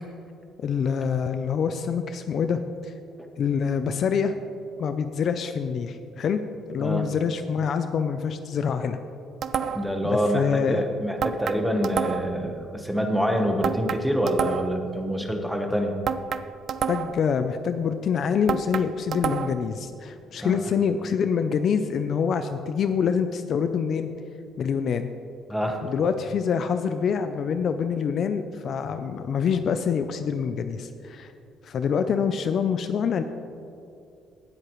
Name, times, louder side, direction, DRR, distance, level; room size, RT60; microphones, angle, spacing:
voice 1, 0.6-2.9 3.4-4.3 4.8-6.4 6.7-9.0 10.0-10.8 16.9-24.1 24.6-25.1 25.8-31.3 31.6-33.2, left 6 dB, 45° left, 9 dB, 0.4 m, -26 dB
sound 1, 9.4-10.0 11.2-12.4 13.6-14.9 16.1-17.3 18.5-19.7, right 7 dB, 50° right, 0.4 m, -29 dB
voice 2, 9.7-16.0 20.4-20.6 25.5-25.8, equal, ahead, 3 dB, 1.0 m, -26 dB
18.0 x 7.9 x 3.1 m, 2.6 s
cardioid pair, 155°, 0 cm